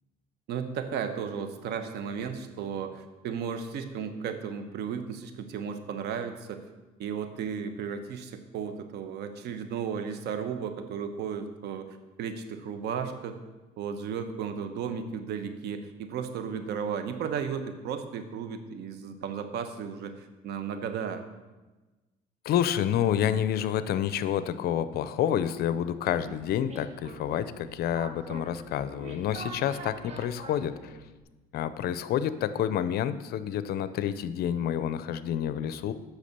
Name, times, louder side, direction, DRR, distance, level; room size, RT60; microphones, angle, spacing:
voice 1, 0.5-6.6 7.0-13.4 13.8-21.2 26.2-26.4, right 7 dB, 75° right, 8 dB, 1.0 m, -34 dB
voice 2, 22.4-31.0 31.5-35.9, left 10 dB, 65° left, 13 dB, 0.6 m, -29 dB
sound 1, 26.1-31.2, right 2 dB, 40° right, 1.5 m, -45 dB
8.3 x 5.9 x 6.8 m, 1.2 s
cardioid pair, 110°, 17 cm